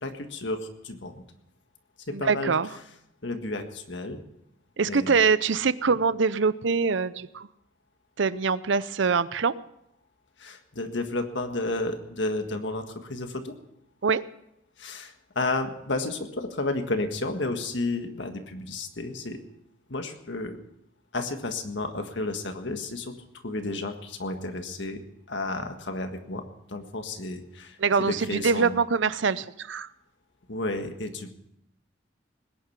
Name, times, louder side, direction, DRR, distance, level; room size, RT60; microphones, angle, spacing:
voice 1, 0.0-1.2 2.1-2.5 3.2-4.2 4.8-5.2 10.4-13.5 14.8-19.4 19.9-20.6 21.1-28.8 30.5-31.3, left 2 dB, 65° left, 6 dB, 1.7 m, -32 dB
voice 2, 2.1-2.7 4.8-7.5 8.2-9.5 14.0-14.2 27.8-29.9, right 5 dB, 65° right, 17 dB, 0.6 m, -24 dB
20.0 x 10.5 x 5.8 m, 0.79 s
head